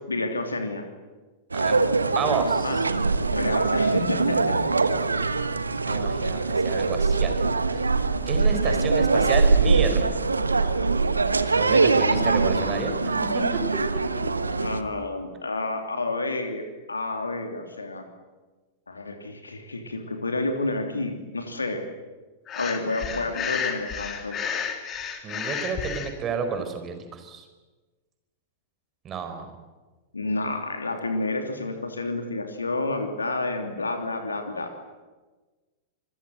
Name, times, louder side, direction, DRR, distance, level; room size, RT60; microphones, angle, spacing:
voice 1, 0.1-0.8 2.6-2.8 3.3-4.6 6.3-6.5 12.0-13.2 14.5-18.0 18.9-21.8 22.6-24.5 30.1-34.7, left 2 dB, 80° left, 5 dB, 3.0 m, -30 dB
sound 1, 1.5-14.8, right 4 dB, 80° right, 1.3 m, -23 dB
voice 2, 2.1-2.7 5.9-7.4 7.7-7.8 8.3-10.1 11.5-13.6 13.9-14.0 25.2-27.4 29.0-29.5, right 5 dB, 25° right, 7 dB, 4.6 m, -31 dB
Breathing, 22.5-26.1, left 7 dB, 25° left, 3.1 m, -31 dB
26.5 x 22.0 x 8.0 m, 1.3 s
figure-of-eight pair, 95°, 0 cm